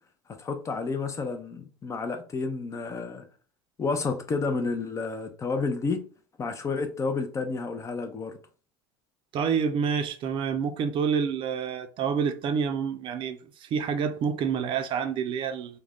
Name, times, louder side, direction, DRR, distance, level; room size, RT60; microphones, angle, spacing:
voice 1, 0.4-3.2 3.8-6.0 6.4-8.3, left 4 dB, 25° left, 0.5 m, -30 dB
voice 2, 9.3-15.8, right 6 dB, 45° right, 0.4 m, -28 dB
2.4 x 2.1 x 3.4 m
supercardioid pair, 105°, 12 cm